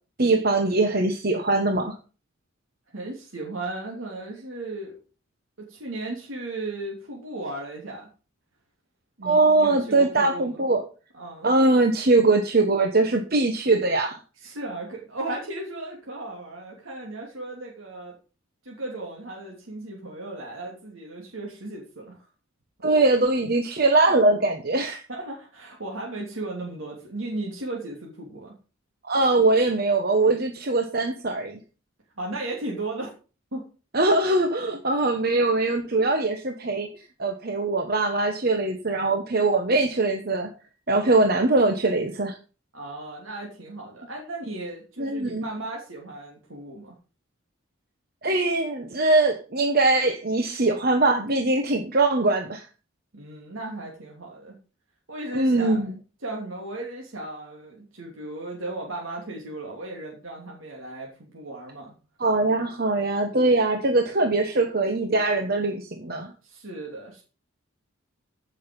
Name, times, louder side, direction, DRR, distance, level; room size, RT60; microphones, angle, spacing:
voice 1, 0.2-1.9 9.2-10.8 11.4-14.2 22.8-25.0 29.1-31.6 33.9-36.9 37.2-40.5 40.9-42.4 45.0-45.4 48.2-52.6 55.3-55.9 62.2-66.3, right 2 dB, 50° right, 5 dB, 1.1 m, -22 dB
voice 2, 2.9-5.0 5.7-8.1 9.2-10.6 11.1-11.5 14.4-18.1 18.6-22.2 25.1-28.5 32.2-33.1 33.5-33.6 42.7-46.9 53.1-54.6 55.1-55.8 56.2-61.9 66.2-67.2, right 2 dB, 80° right, -2 dB, 3.0 m, -36 dB
15.0 x 6.5 x 5.3 m, 0.36 s
head